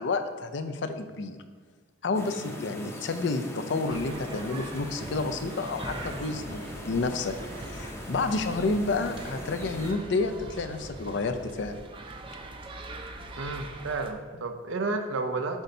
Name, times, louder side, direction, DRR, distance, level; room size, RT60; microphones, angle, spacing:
voice 1, 0.0-1.4 2.0-7.3 7.7-11.8, left 3 dB, 60° left, 9 dB, 0.5 m, -30 dB
sound 1, 2.1-9.9, equal, 15° left, 0.6 m, -41 dB
sound 2, 3.9-14.1, right 2 dB, 25° right, 0.4 m, -43 dB
sound 3, 5.7-11.8, right 1 dB, 60° right, 1.1 m, -45 dB
voice 2, 13.4-15.6, right 3 dB, 80° right, 6 dB, 0.6 m, -31 dB
8.0 x 2.7 x 5.3 m, 1.5 s
head